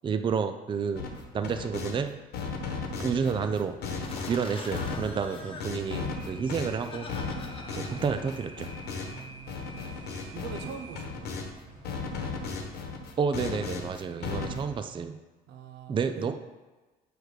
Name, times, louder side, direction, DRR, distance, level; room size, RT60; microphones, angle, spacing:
voice 1, 0.0-1.1 1.3-2.1 3.0-3.8 4.3-7.1 7.7-8.7 13.2-15.2 15.9-16.3, right 6 dB, 30° right, 8 dB, 0.4 m, -30 dB
sound 1, 1.0-2.0 2.3-11.5 11.8-14.8, left 4 dB, 70° left, 1.1 m, -36 dB
sound 2, 4.0-9.2, left 3 dB, 30° left, 1.0 m, -44 dB
sound 3, 4.0-12.6, right 1 dB, 45° right, 1.5 m, -50 dB
voice 2, 9.1-9.8 10.3-11.4 15.5-16.3, right 6 dB, 90° right, 5 dB, 0.9 m, -43 dB
6.3 x 4.8 x 5.0 m, 1.2 s
cardioid pair, 110°, 17 cm